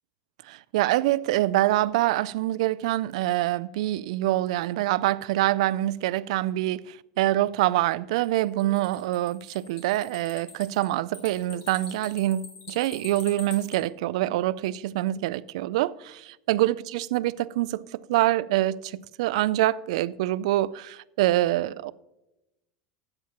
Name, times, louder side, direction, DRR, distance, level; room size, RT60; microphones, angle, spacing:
voice 1, 0.5-21.9, right 15 dB, 80° right, 0.3 m, -25 dB
sound 1, 8.2-13.8, left 4 dB, 60° left, 2.3 m, -44 dB
13.0 x 8.6 x 2.9 m
supercardioid pair, 170°, 3 cm